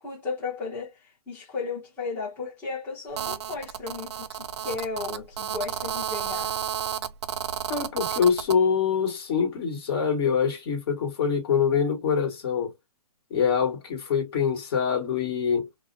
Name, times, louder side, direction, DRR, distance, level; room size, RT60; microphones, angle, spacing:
voice 1, 0.0-6.6, left 4 dB, 10° left, 0.7 m, -35 dB
Telephone, 3.2-8.6, right 9 dB, 45° right, 0.4 m, -32 dB
voice 2, 7.7-12.7 13.3-15.7, left 6 dB, 40° left, 1.3 m, -24 dB
2.4 x 2.1 x 2.5 m
hypercardioid pair, 155°, 20 cm